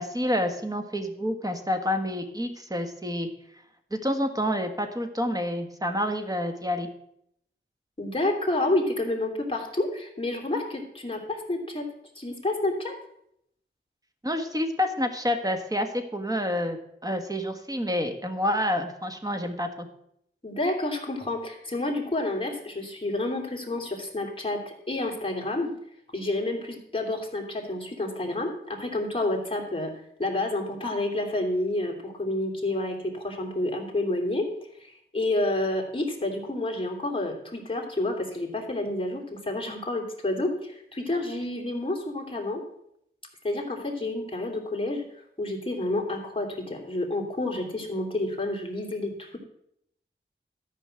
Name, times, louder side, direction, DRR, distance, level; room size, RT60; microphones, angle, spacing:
voice 1, 0.0-3.3 3.9-6.9 14.2-19.9, left 1 dB, 20° right, 6 dB, 1.5 m, -28 dB
voice 2, 8.0-11.8 12.1-12.9 20.4-24.6 24.9-25.7 26.1-29.9 30.2-34.5 34.8-42.6 43.4-45.0 45.4-49.4, left 2 dB, 25° left, 1 dB, 2.8 m, -29 dB
13.0 x 5.4 x 7.7 m, 0.74 s
wide cardioid pair, 80°, 20 cm